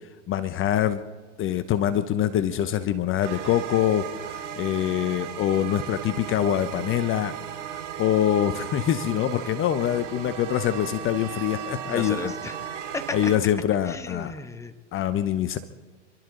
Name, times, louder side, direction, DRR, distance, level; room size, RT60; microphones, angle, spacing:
voice 1, 0.3-1.0 1.4-7.4 7.7-12.3 13.1-14.3 14.9-15.6, left 11 dB, 35° left, 12 dB, 0.9 m, -25 dB
sound 1, 3.2-13.4, right 9 dB, 75° right, 4.2 m, -36 dB
voice 2, 11.9-13.3 13.9-14.7, left 3 dB, 10° left, 10 dB, 1.1 m, -35 dB
27.5 x 12.5 x 3.9 m, 1.4 s
hypercardioid pair, 100°, 37 cm